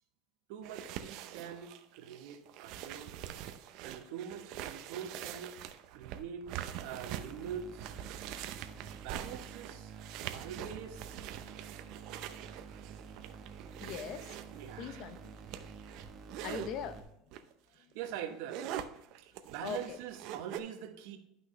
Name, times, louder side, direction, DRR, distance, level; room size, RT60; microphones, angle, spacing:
voice 1, 0.5-3.2 3.8-5.6 5.9-6.5 6.8-7.9 9.0-9.9 10.2-11.2 14.6-15.1 17.7-18.6 19.2-21.2, right 9 dB, 70° right, 1.2 m, -44 dB
sound 1, 0.6-16.7 17.3-17.5 17.9-20.6, right 10 dB, 55° right, 0.6 m, -44 dB
sound 2, 7.0-17.0, right 5 dB, 35° right, 1.1 m, -50 dB
voice 2, 13.8-14.4 14.8-15.4 16.4-17.0 19.6-20.0, left 7 dB, 50° left, 0.8 m, -41 dB
11.0 x 6.0 x 3.2 m
cardioid pair, 155°, 0 cm